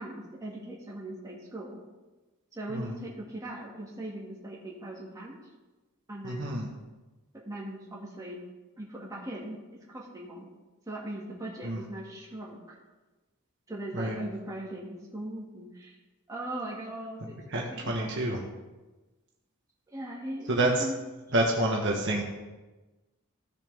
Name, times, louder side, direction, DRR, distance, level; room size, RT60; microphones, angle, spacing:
voice 1, 0.0-1.8 2.5-5.4 6.1-6.5 7.5-8.4 8.8-9.6 9.9-10.5 10.9-12.8 13.7-16.0 16.3-17.4 17.7-18.3 19.9-21.0, right 1 dB, 15° right, -4 dB, 2.1 m, -39 dB
voice 2, 6.2-6.7 11.6-11.8 13.9-14.2 17.5-18.4 20.5-20.8 21.3-22.2, right 1 dB, 55° right, -1 dB, 1.3 m, -28 dB
14.5 x 6.7 x 3.5 m, 1.2 s
head